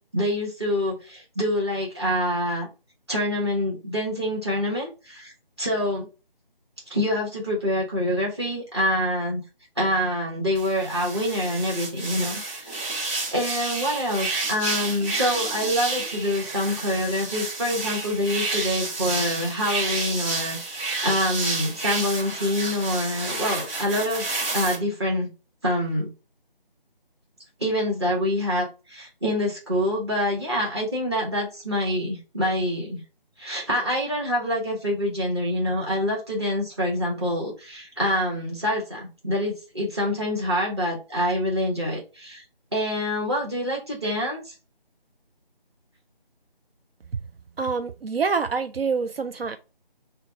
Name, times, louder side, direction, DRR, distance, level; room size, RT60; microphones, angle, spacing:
voice 1, 0.1-2.7 3.1-5.3 5.6-6.1 6.9-9.4 9.8-13.0 13.3-25.3 25.6-26.1 27.6-33.0 33.4-42.4 42.7-44.5, left 1 dB, 30° right, 1.2 m, -26 dB
sound 1, 10.5-24.7, right 3 dB, 15° right, 1.8 m, -30 dB
voice 2, 47.6-49.6, right 5 dB, 80° right, 0.5 m, -26 dB
3.7 x 2.3 x 4.4 m
figure-of-eight pair, 165°, 29 cm